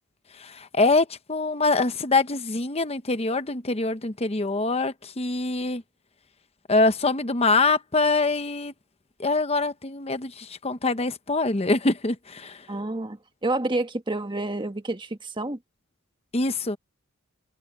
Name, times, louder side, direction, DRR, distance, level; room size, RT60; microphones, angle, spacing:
voice 1, 0.3-5.8 6.7-8.7 9.2-12.7 16.3-16.8, left 3 dB, 30° left, 0.9 m, -24 dB
voice 2, 12.7-15.6, right 2 dB, 20° right, 1.3 m, -29 dB
head